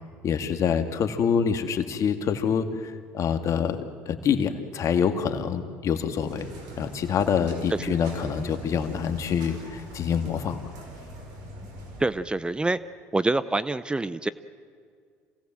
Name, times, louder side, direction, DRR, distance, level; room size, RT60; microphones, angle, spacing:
voice 1, 0.2-6.5 6.8-10.6, left 7 dB, 55° left, 8 dB, 1.9 m, -26 dB
sound 1, 6.2-12.1, right 1 dB, 75° right, 5.3 m, -42 dB
voice 2, 12.0-12.8 13.1-14.3, right 2 dB, 15° right, 16 dB, 0.7 m, -26 dB
27.0 x 17.5 x 7.6 m, 2.1 s
hypercardioid pair, 75°, 7 cm